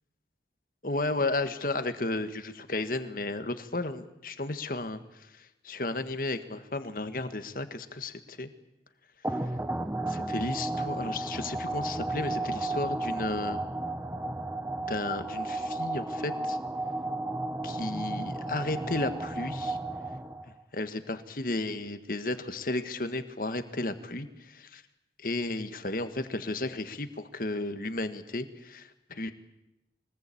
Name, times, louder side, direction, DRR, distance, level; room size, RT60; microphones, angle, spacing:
voice 1, 0.8-5.0 5.3-8.5 10.1-13.6 14.9-16.6 17.6-19.8 20.7-24.8 25.2-29.3, left 2 dB, 50° left, 9 dB, 1.6 m, -33 dB
sound 1, 9.2-20.6, right 2 dB, 10° right, 1.0 m, -33 dB
23.5 x 19.5 x 8.6 m, 0.87 s
head